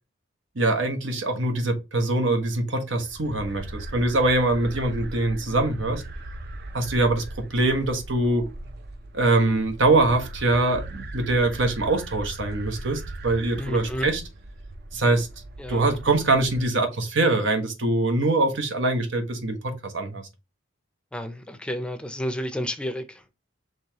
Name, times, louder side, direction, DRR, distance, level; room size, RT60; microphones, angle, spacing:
voice 1, 0.5-6.0 6.7-7.2 7.5-8.5 9.1-14.2 14.9-15.3 15.7-19.6 19.8-20.3, right 2 dB, 85° right, 1.2 m, -23 dB
sound 1, 2.9-16.6, right 1 dB, 55° right, 0.6 m, -39 dB
voice 2, 13.6-14.1 15.6-16.0 21.1-23.2, equal, 5° left, 0.5 m, -31 dB
5.4 x 3.2 x 2.9 m
head